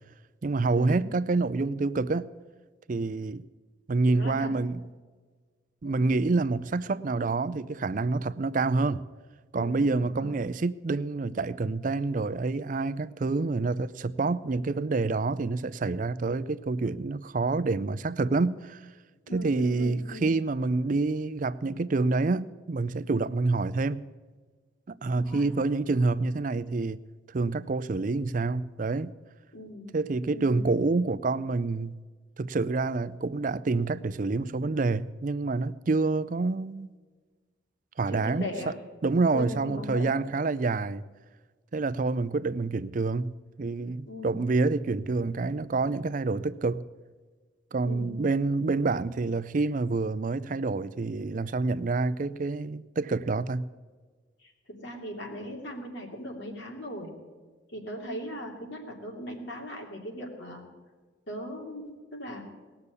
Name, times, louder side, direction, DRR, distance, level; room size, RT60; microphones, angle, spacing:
voice 1, 0.4-2.3 2.9-3.4 3.9-4.8 5.8-9.0 9.5-18.8 19.3-24.0 24.9-27.0 27.3-29.1 29.9-32.0 32.4-36.9 38.0-38.5 39.0-41.0 41.7-46.8 47.7-53.6, right 3 dB, 40° right, 0.4 m, -27 dB
voice 2, 4.2-4.5 5.8-6.0 9.5-10.4 19.3-20.3 25.1-25.5 29.5-29.9 30.3-30.6 38.1-38.7 39.3-40.1 44.1-44.3 47.8-48.1 54.4-54.5 54.8-57.1 57.7-60.6 61.3-62.4, equal, 65° left, 2.7 m, -39 dB
19.0 x 6.8 x 8.3 m
head